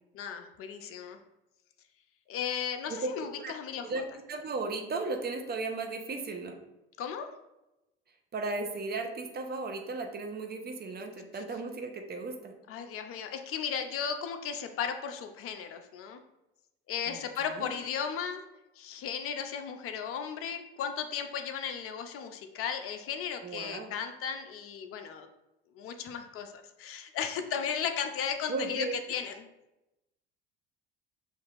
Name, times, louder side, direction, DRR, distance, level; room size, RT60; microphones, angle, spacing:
voice 1, 0.1-1.2 2.3-3.9 7.0-7.3 12.7-16.2 16.9-18.4 18.8-25.3 25.8-29.5, left 7 dB, 50° left, 7 dB, 0.6 m, -35 dB
voice 2, 3.8-6.6 8.3-12.5 17.1-17.2 17.5-17.7 23.4-23.9 28.5-28.9, right 3 dB, 35° right, 3 dB, 0.9 m, -35 dB
7.2 x 2.6 x 2.5 m, 0.94 s
hypercardioid pair, 70°, 30 cm